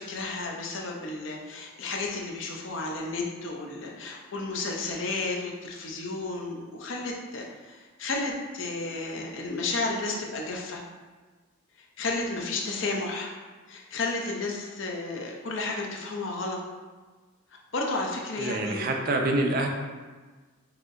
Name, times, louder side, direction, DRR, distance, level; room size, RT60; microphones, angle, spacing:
voice 1, 0.0-10.8 12.0-13.3 13.7-16.6 17.7-18.9, left 3 dB, 60° left, 0 dB, 0.6 m, -32 dB
voice 2, 18.4-19.7, right 2 dB, 40° right, 2 dB, 0.4 m, -26 dB
5.7 x 2.6 x 2.6 m, 1.3 s
head